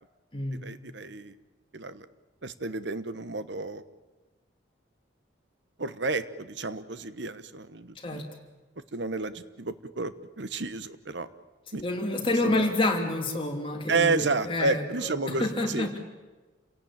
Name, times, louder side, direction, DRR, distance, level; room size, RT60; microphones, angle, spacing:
voice 1, 0.5-1.4 1.7-2.1 2.4-3.8 5.8-8.2 8.9-11.3 11.7-11.8 12.4-12.7 13.9-16.0, right 3 dB, 65° right, 13 dB, 1.1 m, -31 dB
voice 2, 11.8-14.8 15.4-16.0, left 2 dB, 25° left, 2 dB, 3.1 m, -28 dB
28.5 x 17.5 x 8.9 m, 1.2 s
head